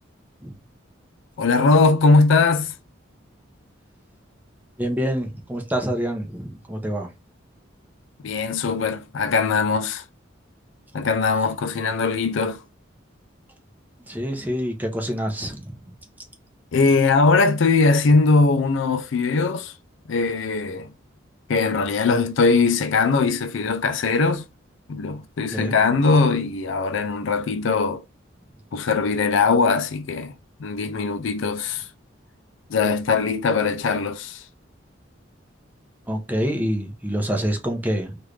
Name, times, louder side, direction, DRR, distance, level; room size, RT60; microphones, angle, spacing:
voice 1, 1.4-2.7 8.2-10.0 10.9-12.6 16.7-19.7 20.1-20.9 21.5-24.4 24.9-28.0 28.7-30.3 30.6-31.9 32.7-34.4, left 4 dB, 75° left, 0.4 m, -20 dB
voice 2, 4.8-7.1 14.1-15.8 25.5-25.8 36.1-38.2, equal, 10° right, 0.7 m, -26 dB
3.1 x 2.5 x 3.2 m
head